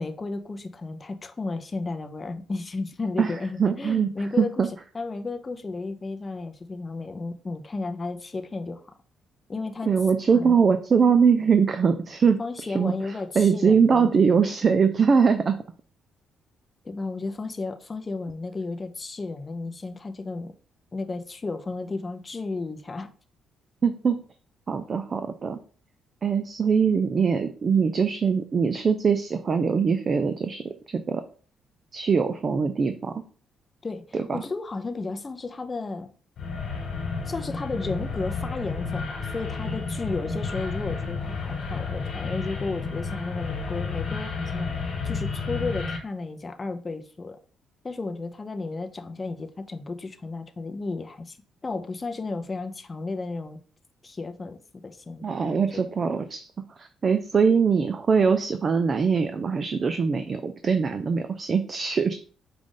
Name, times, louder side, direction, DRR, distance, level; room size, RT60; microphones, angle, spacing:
voice 1, 0.0-8.8 9.5-9.9 10.3-10.6 12.4-14.1 16.8-20.5 20.9-23.1 33.8-36.1 37.3-47.4 47.8-51.4 51.6-53.6 54.0-54.6 54.8-55.8, left 3 dB, 30° left, 0.5 m, -33 dB
voice 2, 3.2-4.1 4.4-4.7 9.9-12.4 12.7-12.9 13.4-15.6 23.8-24.2 24.7-25.6 26.2-30.6 30.9-31.2 31.9-33.1 34.1-34.4 55.2-56.5 56.8-62.1, right 6 dB, 40° right, 0.4 m, -22 dB
sound 1, 36.4-46.0, left 4 dB, 65° left, 1.5 m, -31 dB
5.0 x 2.5 x 3.7 m
cardioid pair, 90°, 0 cm